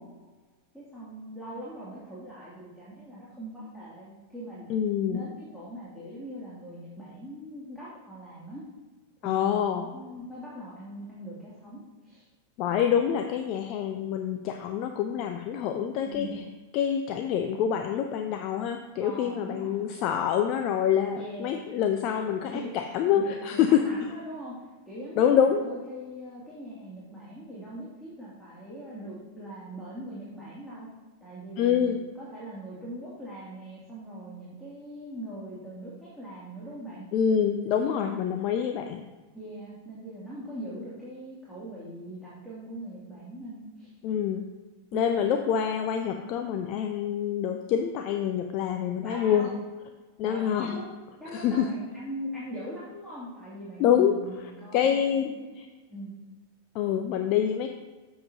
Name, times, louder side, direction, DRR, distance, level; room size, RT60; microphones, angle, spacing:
voice 1, 0.7-4.7 5.1-8.6 9.2-9.6 9.9-12.3 16.0-16.4 19.0-19.9 21.2-21.7 22.4-22.7 23.1-30.9 31.2-37.1 37.6-38.3 39.3-43.9 44.9-45.2 49.0-49.6 50.2-50.9 51.2-55.6 55.9-56.1, right 1 dB, 5° left, -9 dB, 2.8 m, -41 dB
voice 2, 4.7-5.2 9.2-9.9 12.6-16.3 16.7-23.8 25.2-25.6 31.6-32.0 37.1-39.0 44.0-44.4 44.9-49.5 50.2-50.8 51.3-51.7 53.8-54.2 54.7-55.3 55.6-55.7 56.7-57.7, left 8 dB, 40° left, 6 dB, 0.7 m, -26 dB
13.0 x 7.6 x 2.9 m, 1.3 s
figure-of-eight pair, 90°, 0 cm